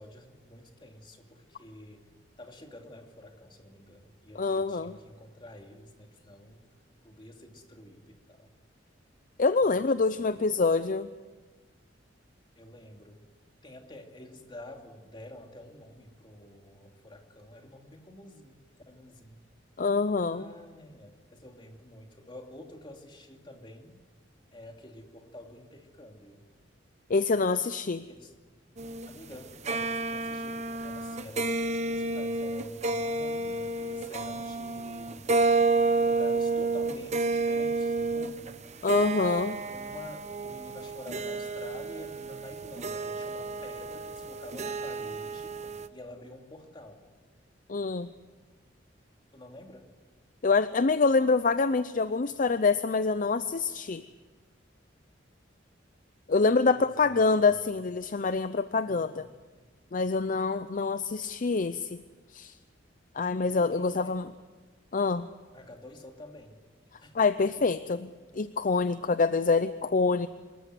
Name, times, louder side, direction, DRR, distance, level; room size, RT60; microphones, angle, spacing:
voice 1, 0.0-2.0 2.4-6.6 7.0-8.5 9.6-10.3 12.6-13.2 13.6-19.5 20.3-24.0 24.5-26.4 28.1-28.3 29.1-35.3 36.0-38.6 39.7-47.0 49.3-49.9 56.6-57.8 58.8-59.3 63.7-64.2 65.5-66.7 67.0-67.2, left 1 dB, 25° left, 3 dB, 2.7 m, -48 dB
voice 2, 4.4-5.0 9.4-11.1 19.8-20.4 27.1-28.0 38.8-39.6 47.7-48.1 50.4-54.0 56.3-59.3 59.9-62.0 62.3-62.5 63.1-64.3 64.9-65.3 67.1-70.3, left 4 dB, 45° left, 12 dB, 0.6 m, -26 dB
sound 1, 28.8-45.9, right 3 dB, 40° right, 0.9 m, -30 dB
26.0 x 14.0 x 9.5 m, 1.4 s
head